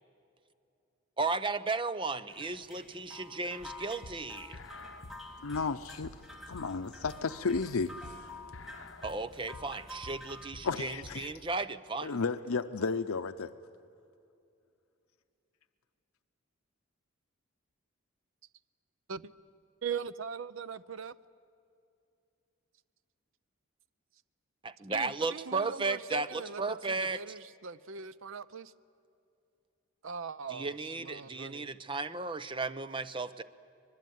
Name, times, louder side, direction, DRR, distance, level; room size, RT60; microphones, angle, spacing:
voice 1, 1.2-4.6 9.0-12.2 24.6-27.2 30.5-33.4, right 3 dB, 25° right, 13 dB, 0.7 m, -35 dB
sound 1, 2.3-10.5, left 1 dB, ahead, 1.9 m, -49 dB
sound 2, 3.6-11.3, left 2 dB, 65° left, 1.1 m, -50 dB
voice 2, 5.4-6.1 6.5-8.3 10.6-11.3 12.0-13.5, left 4 dB, 90° left, 10 dB, 0.7 m, -33 dB
voice 3, 19.8-21.2 24.9-28.7 30.0-31.7, right 6 dB, 70° right, 16 dB, 0.6 m, -41 dB
25.0 x 21.5 x 9.4 m, 2.6 s
head